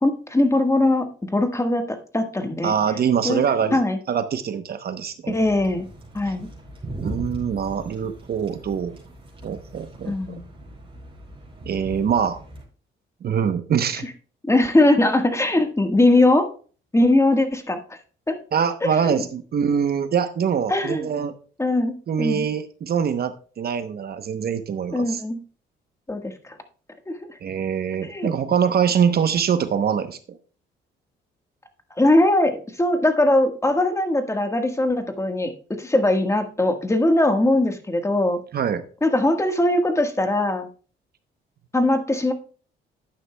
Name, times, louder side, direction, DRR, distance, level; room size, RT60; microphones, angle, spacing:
voice 1, 0.0-2.7 3.2-3.4 3.7-4.0 5.3-5.9 6.1-6.5 10.0-10.5 14.4-16.5 16.9-17.8 18.3-18.4 19.0-19.2 20.7-21.1 21.6-22.5 24.9-25.4 26.1-26.3 27.1-27.2 28.0-28.3 32.0-38.4 39.0-40.7 41.7-42.3, left 1 dB, 15° left, 6 dB, 1.4 m, -20 dB
voice 2, 2.6-3.8 4.1-5.4 7.0-9.0 9.4-10.4 11.6-12.4 13.2-14.0 18.5-21.3 22.1-25.2 27.4-30.4 38.5-38.8, right 7 dB, 50° right, 10 dB, 0.9 m, -24 dB
sound 1, 5.3-12.6, right 1 dB, 25° right, 5.3 m, -39 dB
11.5 x 9.0 x 2.2 m, 0.39 s
cardioid pair, 90°, 20 cm